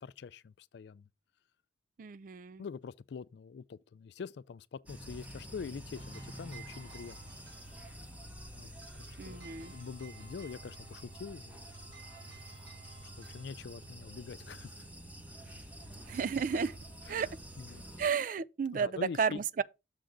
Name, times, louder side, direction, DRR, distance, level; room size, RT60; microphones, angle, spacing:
voice 1, 0.0-1.1 2.6-7.2 8.6-8.8 9.3-11.6 13.2-14.7 17.1-17.8 18.7-19.4, left 5 dB, 60° left, 0.3 m, -44 dB
voice 2, 2.0-2.6 9.2-9.7 16.1-16.8 17.1-17.3 18.0-19.6, right 6 dB, 45° right, 0.3 m, -32 dB
sound 1, 4.8-18.1, right 1 dB, 10° right, 0.9 m, -48 dB
sound 2, 5.7-16.1, right 5 dB, 80° right, 3.1 m, -58 dB
6.8 x 3.9 x 6.0 m
head